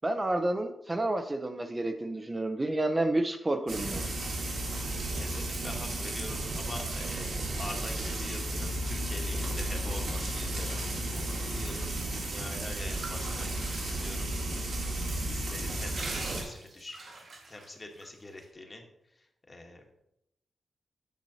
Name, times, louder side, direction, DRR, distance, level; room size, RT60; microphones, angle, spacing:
voice 1, 0.0-4.0, right 1 dB, 25° right, 6 dB, 0.6 m, -30 dB
Frying (food), 3.7-16.4, right 1 dB, 85° right, 2.1 m, -33 dB
voice 2, 4.7-10.8 11.2-13.5 13.8-14.3 14.7-17.1 17.5-18.8 19.5-19.8, left 2 dB, 30° left, 2 dB, 1.3 m, -45 dB
sound 1, 12.7-14.7 15.1-15.2 15.6-18.1, right 3 dB, 65° right, 1.7 m, -44 dB
9.1 x 6.0 x 2.8 m, 0.83 s
cardioid pair, 80°, 0 cm